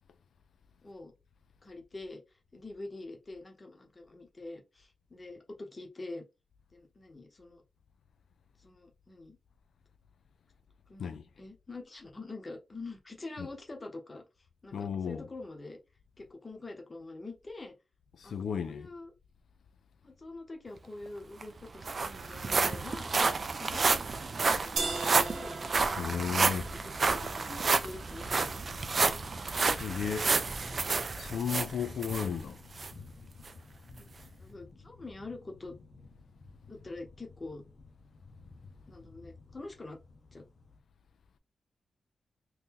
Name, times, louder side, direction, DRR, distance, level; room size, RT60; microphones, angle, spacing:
voice 1, 0.8-1.1 1.6-6.2 6.7-7.6 8.6-9.4 10.9-14.2 14.6-15.8 16.2-17.7 18.2-19.1 20.0-23.1 23.6-24.0 24.5-25.6 26.7-28.6 32.0-32.1 34.0-34.1 34.4-35.7 36.7-37.6 38.9-40.0 40.3-40.4, left 2 dB, 25° left, 0.8 m, -45 dB
voice 2, 14.7-15.3 18.1-18.9 26.0-26.7 29.7-30.4 31.2-32.6, left 7 dB, 85° left, 0.3 m, -34 dB
sound 1, 21.1-21.2 21.4-32.3 32.8-32.9 33.5-33.6, right 4 dB, 40° right, 0.3 m, -30 dB
sound 2, 24.8-30.7, right 3 dB, 85° right, 0.8 m, -41 dB
sound 3, 25.8-40.8, left 3 dB, 55° left, 0.7 m, -52 dB
2.9 x 2.6 x 3.6 m
wide cardioid pair, 160°, 0 cm